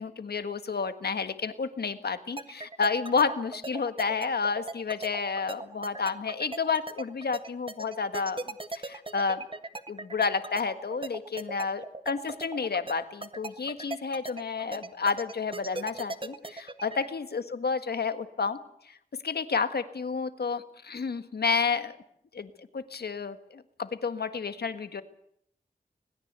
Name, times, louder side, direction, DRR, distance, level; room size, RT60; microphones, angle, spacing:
voice 1, 0.0-9.4 9.9-18.6 18.8-19.0 19.2-22.0 22.3-25.0, left 5 dB, 85° left, 10 dB, 1.6 m, -30 dB
sound 1, 2.4-17.1, right 2 dB, 35° right, 1.7 m, -38 dB
25.5 x 20.5 x 8.2 m, 0.71 s
wide cardioid pair, 65°, 16 cm